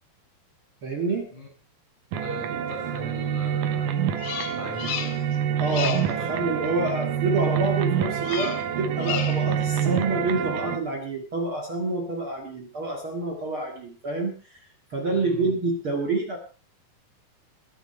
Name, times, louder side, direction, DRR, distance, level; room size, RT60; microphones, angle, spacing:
voice 1, 0.8-1.3 5.6-14.6 14.9-16.4, right 2 dB, 45° right, 3 dB, 2.4 m, -28 dB
sound 1, 2.1-10.8, right 9 dB, 75° right, 2.7 m, -27 dB
voice 2, 2.2-4.1 4.5-5.0 6.1-6.3 15.1-15.6, equal, 55° left, -1 dB, 8.4 m, -39 dB
Bird vocalization bird call bird song, 4.2-5.4 5.6-6.2 8.2-8.7 9.0-9.5, left 10 dB, 80° left, 3.1 m, -33 dB
22.0 x 10.5 x 4.3 m, 0.37 s
omnidirectional pair, 4.0 m